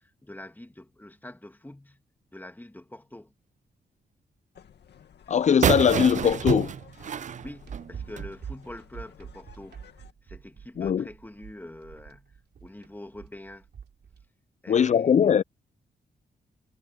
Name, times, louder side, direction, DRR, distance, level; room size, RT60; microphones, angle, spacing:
voice 1, 0.0-2.0 2.3-3.3 7.4-9.8 10.2-13.7 14.6-15.4, left 1 dB, 10° left, 2.5 m, -45 dB
sound 1, 4.5-10.1, left 8 dB, 80° left, 2.1 m, -51 dB
voice 2, 5.3-6.7 10.8-11.0 14.7-15.4, left 8 dB, 45° left, 0.4 m, -21 dB
sound 2, 5.6-8.3, right 8 dB, 45° right, 0.4 m, -28 dB
sound 3, 7.4-14.2, right 7 dB, 70° right, 3.3 m, -44 dB
cardioid pair, 75°, 17 cm